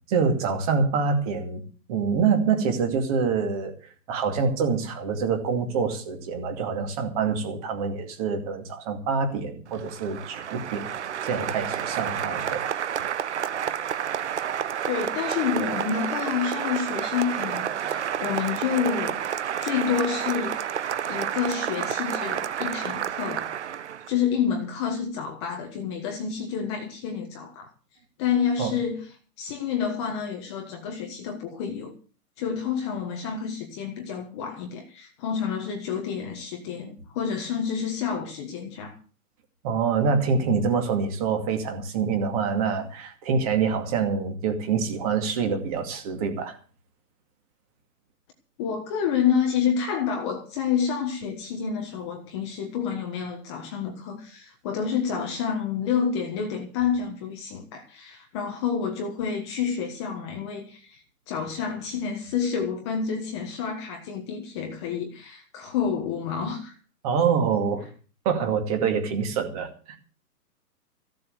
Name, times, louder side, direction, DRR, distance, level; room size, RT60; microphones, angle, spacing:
voice 1, 0.1-1.6 1.9-3.7 4.1-12.6 28.6-28.7 39.6-46.6 67.0-67.8 68.2-70.0, right 5 dB, 25° right, 2.3 m, -26 dB
Applause, 9.7-24.1, right 9 dB, 45° right, 0.9 m, -30 dB
voice 2, 14.8-19.2 19.6-20.7 21.1-23.5 24.1-27.7 28.2-29.1 29.4-31.9 32.4-39.0 48.6-66.7, left 7 dB, 20° left, 1.4 m, -29 dB
15.5 x 7.7 x 7.9 m
hypercardioid pair, 165°, 47 cm